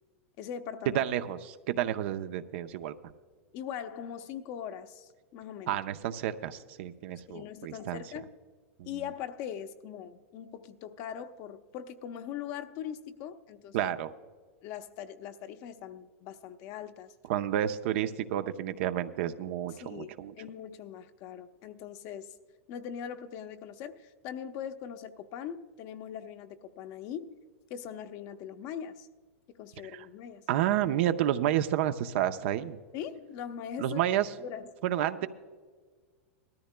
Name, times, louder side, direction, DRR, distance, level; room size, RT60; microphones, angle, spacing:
voice 1, 0.4-1.0 3.5-5.8 7.3-8.3 8.8-13.9 14.6-17.1 19.7-20.1 20.4-22.3 22.7-27.4 27.7-29.1 29.6-30.5 32.9-34.0 34.4-34.7, left 9 dB, 50° left, 8 dB, 0.8 m, -41 dB
voice 2, 0.9-2.9 5.7-8.0 8.8-8.9 13.7-14.1 17.3-20.3 29.9-30.1 30.5-32.8 33.8-34.3 34.8-35.3, right 11 dB, 60° right, 10 dB, 0.7 m, -30 dB
19.0 x 13.5 x 2.2 m, 1.5 s
hypercardioid pair, 105°, 7 cm